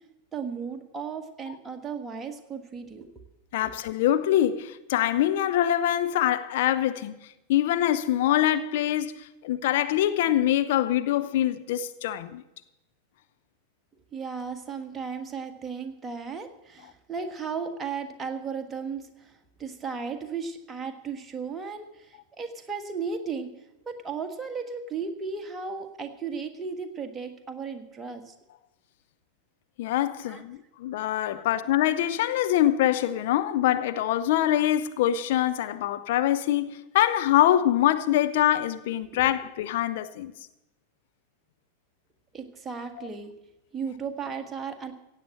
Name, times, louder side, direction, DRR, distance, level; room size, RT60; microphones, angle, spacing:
voice 1, 0.3-3.1 14.1-19.3 19.6-23.5 23.8-28.3 30.2-30.4 31.3-31.4 39.0-39.2 42.3-43.3 43.7-44.9, right 5 dB, 15° right, 1.6 m, -35 dB
voice 2, 3.5-7.1 7.5-12.4 29.8-40.3 43.0-43.1, left 12 dB, 50° left, 0.7 m, -24 dB
16.5 x 8.3 x 7.5 m
figure-of-eight pair, 90°, 0 cm